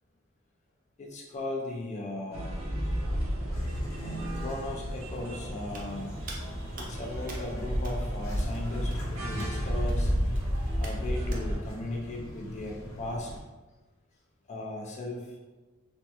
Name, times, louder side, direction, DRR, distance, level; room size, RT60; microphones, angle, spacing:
voice 1, 1.0-2.6 4.0-6.1 6.8-10.1 10.8-13.3 14.5-15.4, left 2 dB, 35° left, -1 dB, 0.4 m, -37 dB
sound 1, 2.3-11.6, equal, 85° right, 0.6 m, -32 dB
sound 2, 3.5-13.4, equal, 70° left, 0.8 m, -40 dB
Hands, 5.7-11.4, right 2 dB, 45° right, 0.5 m, -47 dB
3.2 x 2.0 x 2.8 m, 1.2 s
head